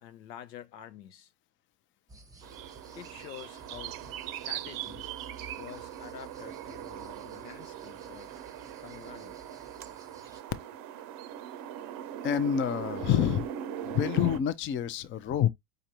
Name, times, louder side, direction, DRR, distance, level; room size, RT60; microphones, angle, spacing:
voice 1, 0.0-1.3 3.0-4.0 4.3-5.1 5.6-8.4 8.8-9.3, left 10 dB, 85° left, 0.8 m, -48 dB
sound 1, 2.1-10.4, right 2 dB, 5° right, 0.8 m, -54 dB
sound 2, 2.4-14.4, right 10 dB, 45° right, 0.6 m, -40 dB
voice 2, 12.2-13.5 13.8-15.5, left 9 dB, 25° left, 0.5 m, -27 dB
5.1 x 3.2 x 2.8 m
hypercardioid pair, 85°, 50 cm